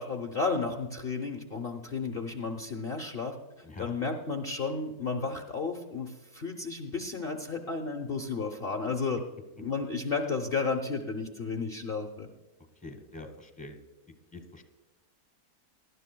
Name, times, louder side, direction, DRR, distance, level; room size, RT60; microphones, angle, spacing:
voice 1, 0.0-3.3 3.8-9.2 9.6-12.3, left 4 dB, 45° left, 2 dB, 1.0 m, -33 dB
voice 2, 12.8-13.8 14.3-14.6, left 2 dB, 5° left, 6 dB, 1.2 m, -44 dB
19.5 x 11.5 x 2.2 m, 1.1 s
omnidirectional pair, 1.6 m